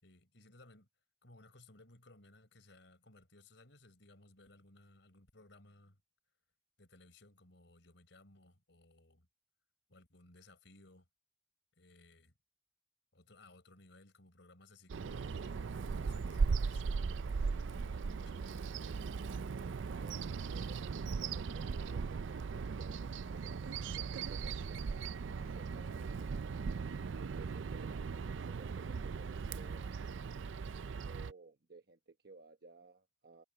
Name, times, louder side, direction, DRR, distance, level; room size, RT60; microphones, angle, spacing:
voice 1, 0.0-0.9 1.2-6.0 6.8-9.3 9.9-11.1 11.8-12.3 13.1-18.8, left 2 dB, 70° left, 4.7 m, -61 dB
Bird vocalization bird call bird song, 14.9-31.3, right 5 dB, 75° right, 0.4 m, -38 dB
voice 2, 19.6-24.8 25.2-26.4 27.2-30.1 30.7-33.4, right 3 dB, 55° right, 1.1 m, -57 dB
Walk footsteps, 20.0-26.4, left 1 dB, 40° left, 5.3 m, -67 dB
head